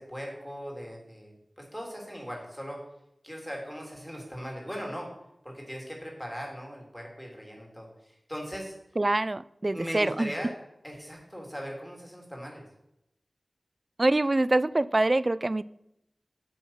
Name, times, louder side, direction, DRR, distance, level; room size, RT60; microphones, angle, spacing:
voice 1, 0.0-2.8 3.2-5.1 5.4-8.7 9.7-10.5 10.8-12.6, equal, 5° left, 3.2 m, -39 dB
voice 2, 9.0-10.3 14.0-15.6, right 2 dB, 35° right, 0.3 m, -25 dB
8.5 x 7.0 x 5.6 m
wide cardioid pair, 65°, 0 cm